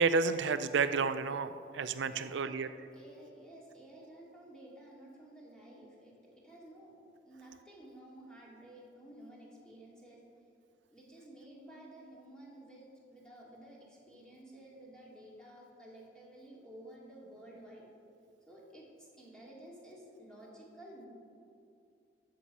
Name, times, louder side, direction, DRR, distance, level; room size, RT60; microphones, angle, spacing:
voice 1, 0.0-2.7, right 5 dB, 85° right, 11 dB, 0.4 m, -30 dB
voice 2, 2.1-2.6 2.9-7.0 7.2-10.3 10.9-17.9 18.5-21.1, right 1 dB, 5° left, -5 dB, 2.4 m, -53 dB
12.5 x 7.7 x 5.4 m, 2.5 s
head